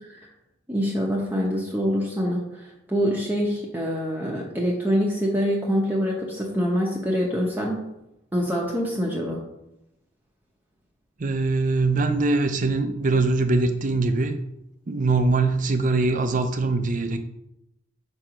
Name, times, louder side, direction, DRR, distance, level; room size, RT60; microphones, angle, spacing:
voice 1, 0.7-7.8 8.3-9.4, equal, 10° right, -3 dB, 0.8 m, -25 dB
voice 2, 11.2-14.4 14.9-17.2, right 3 dB, 40° right, 8 dB, 0.5 m, -22 dB
6.1 x 4.6 x 4.9 m, 0.86 s
head